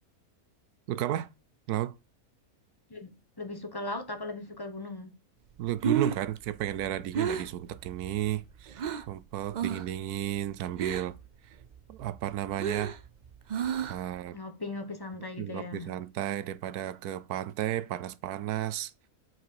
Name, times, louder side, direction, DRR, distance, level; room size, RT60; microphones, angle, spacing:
voice 1, 0.9-1.3 1.7-1.9 5.6-11.2 11.4-11.6 11.9-13.0 13.8-14.4 15.4-18.9, right 12 dB, 80° right, 1.2 m, -33 dB
voice 2, 2.9-5.1 14.3-15.9, left 2 dB, 15° left, 1.3 m, -38 dB
Breathing, 5.6-9.2 9.5-10.0 10.2-11.3 11.6-14.2, right 7 dB, 65° right, 0.4 m, -33 dB
8.2 x 4.6 x 4.7 m
omnidirectional pair, 1.6 m